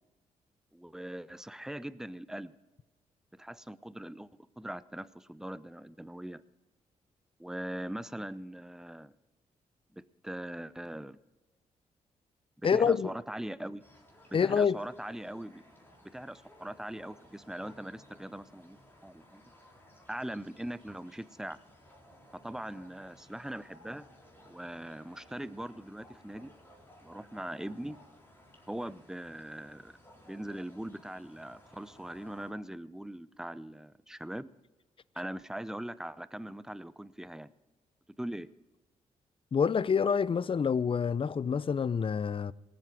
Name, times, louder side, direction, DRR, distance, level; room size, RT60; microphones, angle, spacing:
voice 1, 0.7-2.5 3.3-4.3 4.6-6.4 7.4-9.1 9.9-11.2 12.7-13.8 14.3-15.6 16.0-19.4 20.1-21.6 22.4-24.1 24.5-26.5 27.0-28.0 28.7-29.9 30.2-34.5 35.2-37.5 38.2-38.5, right 1 dB, 5° right, 0.6 m, -41 dB
voice 2, 12.6-13.1 14.3-14.8 39.5-42.5, left 6 dB, 35° left, 0.5 m, -27 dB
sound 1, 13.8-32.5, equal, 15° left, 4.0 m, -58 dB
19.0 x 7.7 x 5.2 m
hypercardioid pair, 45°, 15 cm